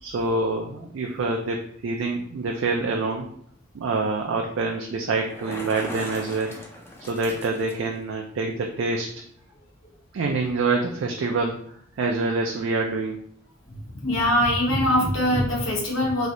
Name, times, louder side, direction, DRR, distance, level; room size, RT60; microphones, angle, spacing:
voice 1, 0.0-3.3 3.7-6.6 7.1-9.1 10.1-11.6 12.0-13.2, right 3 dB, 65° right, 1 dB, 0.4 m, -26 dB
Bicycle, 5.1-8.0, left 1 dB, 10° left, 0.5 m, -39 dB
voice 2, 13.7-16.3, left 1 dB, 80° left, -3 dB, 1.1 m, -22 dB
3.1 x 2.7 x 2.5 m, 0.66 s
head